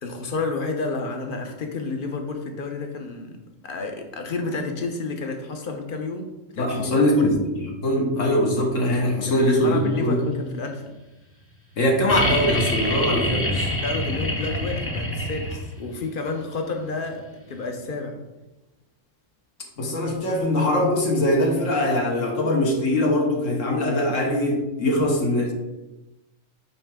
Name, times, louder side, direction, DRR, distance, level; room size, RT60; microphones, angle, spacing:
voice 1, 0.0-3.4 3.6-7.3 9.3-10.8 13.8-18.2, left 3 dB, 50° left, 5 dB, 0.8 m, -30 dB
voice 2, 6.6-10.2 11.8-13.7 19.8-25.5, left 1 dB, 75° left, 0 dB, 1.5 m, -22 dB
sound 1, 12.1-15.9 17.6-17.7, left 1 dB, 15° left, 0.5 m, -26 dB
8.7 x 3.3 x 3.5 m, 1.0 s
omnidirectional pair, 1.4 m